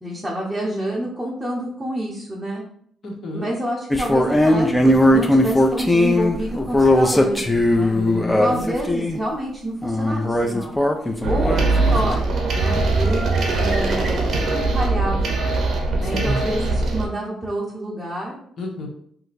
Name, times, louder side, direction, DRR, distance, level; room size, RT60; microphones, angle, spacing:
voice 1, 0.0-2.6 3.3-8.0 8.4-10.8 11.2-12.3 12.5-14.5 14.7-15.4 16.0-18.4, right 1 dB, 10° right, -5 dB, 0.9 m, -28 dB
voice 2, 3.0-3.5 7.9-8.7 16.0-16.4 18.6-18.9, left 1 dB, 55° left, 0 dB, 1.0 m, -29 dB
sound 1, 3.9-9.2 9.8-12.1, left 1 dB, 10° left, 0.5 m, -18 dB
sound 2, 11.2-17.1, right 3 dB, 55° right, 0.9 m, -21 dB
2.8 x 2.2 x 4.1 m, 0.65 s
cardioid pair, 85°, 0 cm